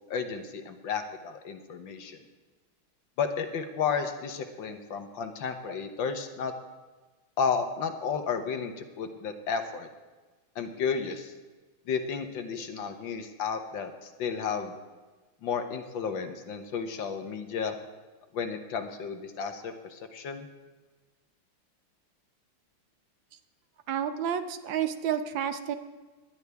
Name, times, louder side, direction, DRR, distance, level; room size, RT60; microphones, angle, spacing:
voice 1, 0.1-2.2 3.2-6.5 7.4-9.9 10.6-11.3 11.9-14.7 15.4-17.8 18.3-20.5, left 6 dB, 65° left, 7 dB, 1.7 m, -32 dB
voice 2, 23.9-25.8, right 9 dB, 70° right, 9 dB, 1.4 m, -30 dB
19.0 x 11.5 x 3.5 m, 1.3 s
omnidirectional pair, 2.3 m